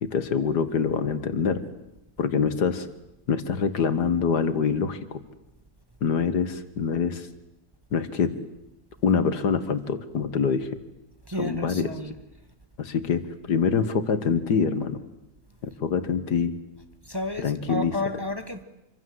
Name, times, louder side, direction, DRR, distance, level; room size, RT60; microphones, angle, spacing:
voice 1, 0.0-1.6 2.2-2.9 3.3-5.2 6.0-7.3 7.9-8.3 9.0-10.7 11.4-11.9 12.8-13.2 13.5-15.0 15.6-16.5 17.4-17.9, left 6 dB, 80° left, 2.1 m, -25 dB
voice 2, 11.3-12.2 17.0-18.6, left 1 dB, 15° right, 1.5 m, -32 dB
26.5 x 25.0 x 7.9 m
omnidirectional pair, 1.7 m